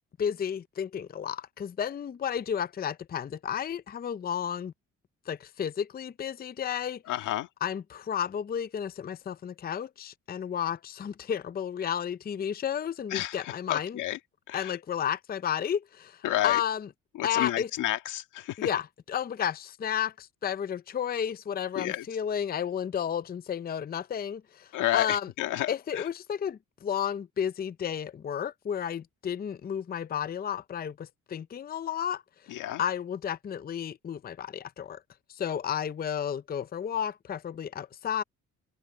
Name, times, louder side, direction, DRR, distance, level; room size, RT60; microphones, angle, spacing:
voice 1, 0.2-4.7 5.3-7.0 7.6-14.0 14.5-16.9 17.2-17.7 18.6-25.3 25.7-32.5 32.8-35.0 35.3-38.2, left 8 dB, 30° left, 0.5 m, -32 dB
voice 2, 7.1-7.5 13.1-14.2 14.5-14.8 16.2-16.6 17.1-18.7 21.7-22.1 24.7-26.1 32.5-32.8, left 14 dB, 90° left, 1.8 m, -31 dB
cardioid pair, 90°, 30 cm